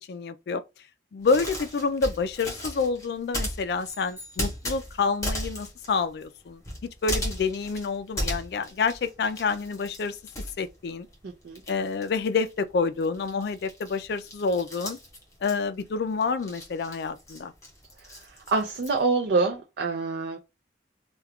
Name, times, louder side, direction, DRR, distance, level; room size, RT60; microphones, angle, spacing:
voice 1, 0.1-0.6 1.1-6.6 7.0-10.2 10.6-11.1 11.7-15.0 15.4-17.5, left 4 dB, 60° left, 0.3 m, -28 dB
sound 1, 1.2-11.2 11.5-19.0, equal, 15° left, 0.9 m, -36 dB
sound 2, 3.8-4.9, left 1 dB, 10° right, 0.7 m, -47 dB
voice 2, 11.2-11.6 18.5-20.4, right 3 dB, 60° right, 0.4 m, -26 dB
2.3 x 2.2 x 3.4 m
head